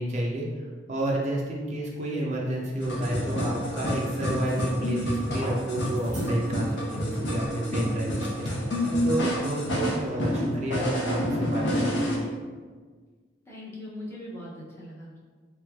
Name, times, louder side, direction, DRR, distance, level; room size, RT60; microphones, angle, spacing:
voice 1, 0.0-8.5 9.0-12.3, right 1 dB, 40° right, -2 dB, 0.4 m, -30 dB
sound 1, 2.5-7.8 8.2-8.6, right 1 dB, 90° right, 0.8 m, -47 dB
sound 2, 2.8-12.1, equal, 70° left, 0.7 m, -28 dB
voice 2, 13.5-15.2, left 1 dB, 15° left, -6 dB, 0.6 m, -40 dB
3.4 x 3.1 x 2.3 m, 1.5 s
head